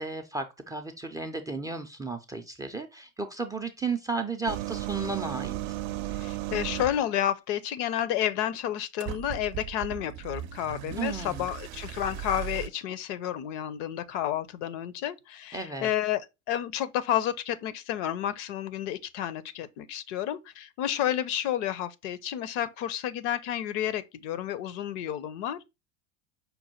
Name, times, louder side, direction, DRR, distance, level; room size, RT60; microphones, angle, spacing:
voice 1, 0.0-5.8 11.0-11.5 15.5-15.9, right 4 dB, 10° right, 0.4 m, -34 dB
sound 1, 4.5-7.0 9.0-12.7, right 14 dB, 70° right, 0.6 m, -36 dB
voice 2, 6.1-25.7, left 11 dB, 60° left, 0.6 m, -31 dB
5.3 x 2.2 x 4.3 m
supercardioid pair, 105°, 39 cm